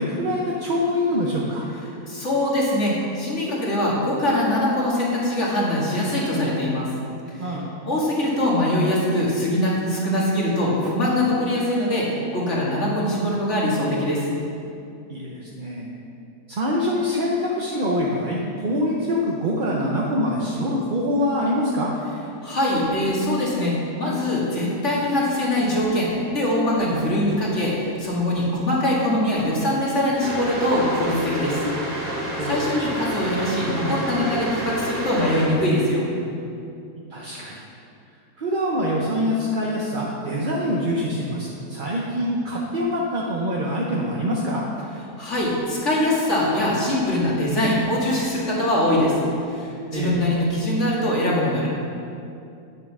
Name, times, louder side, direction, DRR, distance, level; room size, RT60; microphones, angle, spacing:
voice 1, 0.0-1.7 7.4-7.7 15.1-15.9 16.5-21.9 32.4-32.7 37.1-37.6 38.4-44.6 49.9-50.2, equal, 40° right, -4 dB, 0.8 m, -25 dB
voice 2, 2.0-6.9 7.3-7.4 7.9-14.3 22.4-31.7 32.1-36.0 45.2-49.2 49.5-51.7, left 1 dB, 45° left, -5 dB, 2.3 m, -22 dB
sound 1, 30.2-35.5, right 1 dB, 70° right, 2.2 m, -29 dB
8.7 x 6.8 x 6.0 m, 2.6 s
omnidirectional pair, 1.8 m